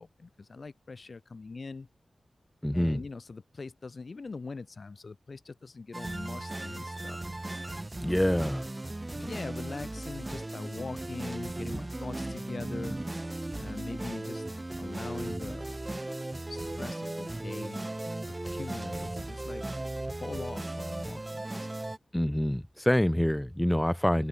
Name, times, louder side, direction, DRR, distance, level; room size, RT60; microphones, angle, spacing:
voice 1, 0.0-1.9 2.7-7.2 8.0-8.4 9.1-13.0 13.5-15.8 16.5-17.8 18.3-19.6 20.2-21.7 24.1-24.3, left 4 dB, 50° left, 2.0 m, -42 dB
voice 2, 2.6-3.0 8.0-8.6 22.1-24.3, equal, 5° left, 0.7 m, -26 dB
sound 1, 5.9-22.0, right 2 dB, 20° right, 1.3 m, -37 dB
open air
wide cardioid pair, 90°, 0 cm